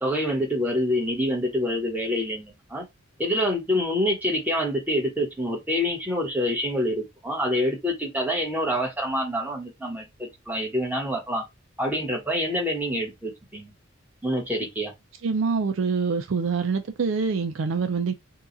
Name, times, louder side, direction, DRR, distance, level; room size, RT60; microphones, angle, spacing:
voice 1, 0.0-2.8 3.2-11.4 11.8-13.7 14.2-14.9, equal, 10° right, 1.0 m, -26 dB
voice 2, 15.2-18.1, right 5 dB, 70° right, 0.5 m, -25 dB
2.8 x 2.3 x 3.7 m
head